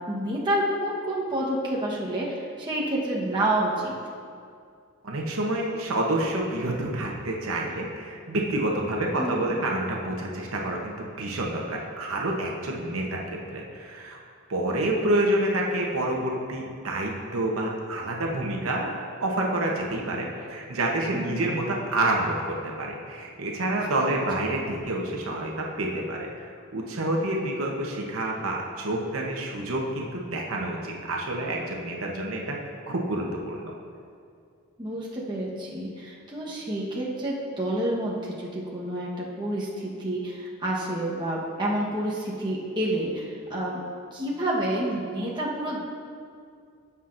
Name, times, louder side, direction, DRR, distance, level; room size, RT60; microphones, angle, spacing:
voice 1, 0.1-3.9 9.2-9.4 21.1-21.4 23.7-23.8 24.1-24.2 34.8-43.8 44.1-45.8, right 1 dB, 20° right, -5 dB, 1.1 m, -29 dB
voice 2, 5.0-13.2 13.5-14.2 14.5-18.9 19.2-26.5 26.7-32.6 32.9-33.7, right 1 dB, 75° right, -1 dB, 1.0 m, -28 dB
15.5 x 5.8 x 2.6 m, 2.3 s
head